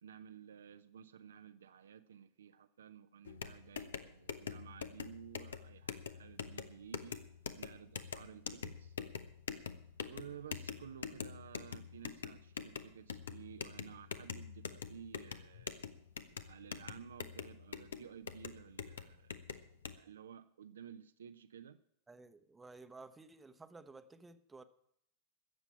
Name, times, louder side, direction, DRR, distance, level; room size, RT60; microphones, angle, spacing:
voice 1, 0.0-7.2 7.5-9.0 10.1-15.8 16.3-19.3 20.0-21.8, right 8 dB, 65° right, 0.6 m, -54 dB
sound 1, 3.3-20.0, left 7 dB, 65° left, 0.8 m, -45 dB
voice 2, 22.1-24.6, right 3 dB, 10° right, 0.9 m, -54 dB
14.0 x 7.2 x 8.8 m
figure-of-eight pair, 90°, 0 cm